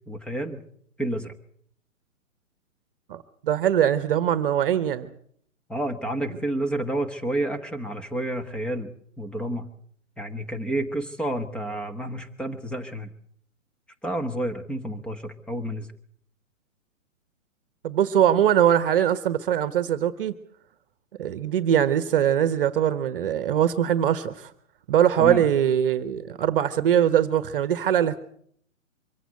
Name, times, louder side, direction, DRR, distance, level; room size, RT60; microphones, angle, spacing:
voice 1, 0.1-0.6 1.0-1.3 5.7-8.9 9.2-9.7 10.2-13.1 14.0-15.9 25.2-25.4, right 1 dB, ahead, 7 dB, 1.1 m, -30 dB
voice 2, 3.1-5.1 17.8-20.3 21.2-24.5 24.9-28.2, right 10 dB, 40° right, 14 dB, 1.2 m, -22 dB
24.0 x 15.5 x 8.3 m, 0.64 s
figure-of-eight pair, 125°, 40 cm